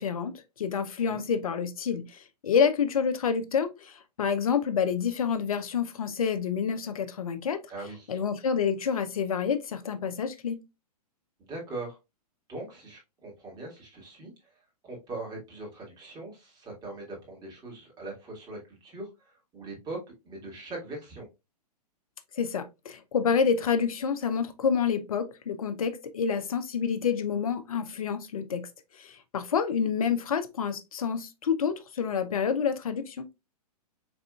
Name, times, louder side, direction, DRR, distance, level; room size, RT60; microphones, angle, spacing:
voice 1, 0.0-7.6 8.1-10.6 22.4-28.6 29.0-33.3, left 6 dB, 60° left, 0.6 m, -28 dB
voice 2, 7.7-8.2 11.5-12.0 12.5-14.3 14.8-20.0 20.2-21.3, right 2 dB, 20° right, 1.8 m, -41 dB
4.9 x 3.4 x 2.3 m
figure-of-eight pair, 110°, 21 cm